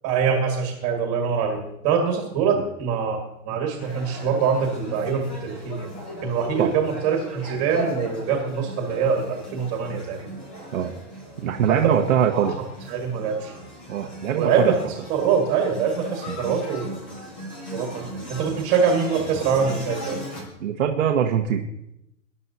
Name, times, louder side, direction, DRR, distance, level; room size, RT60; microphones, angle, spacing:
voice 1, 0.0-5.9 6.2-10.3 11.7-11.8 12.3-12.5 12.9-13.5 14.3-14.8 15.1-16.9 17.7-20.2, right 6 dB, 20° right, 2 dB, 1.6 m, -24 dB
sound 1, 3.8-20.4, equal, 5° left, 0.5 m, -37 dB
voice 2, 11.4-12.5 13.9-14.7 16.3-16.4 20.6-21.6, right 8 dB, 70° right, 3 dB, 1.2 m, -22 dB
22.0 x 11.0 x 2.7 m, 0.84 s
hypercardioid pair, 175°, 41 cm